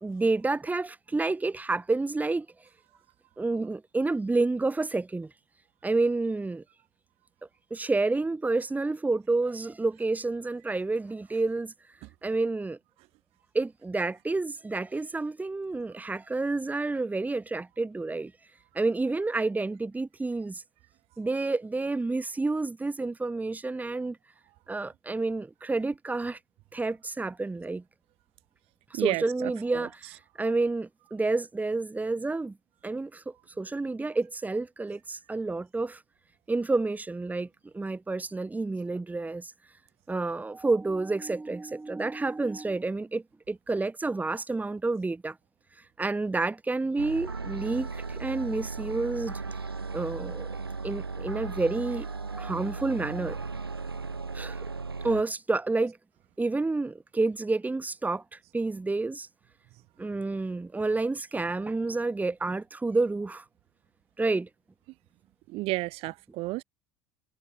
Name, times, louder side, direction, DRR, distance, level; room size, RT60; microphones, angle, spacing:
voice 1, 0.0-2.7 3.4-5.3 5.8-6.6 7.7-11.7 12.2-12.8 13.5-18.3 18.7-20.6 21.2-24.2 24.7-26.4 26.7-27.8 28.9-32.6 32.8-36.0 36.5-39.5 40.1-45.4 45.7-49.4 49.9-50.5 50.8-53.4 54.3-54.6 55.0-56.0 56.4-59.3 60.0-63.5 64.2-64.5, right 3 dB, 15° right, 3.6 m, -29 dB
voice 2, 28.9-29.9 65.5-66.6, right 21 dB, 55° right, 5.8 m, -32 dB
sound 1, 47.0-55.2, right 4 dB, 85° right, 4.5 m, -36 dB
figure-of-eight pair, 70°, 12 cm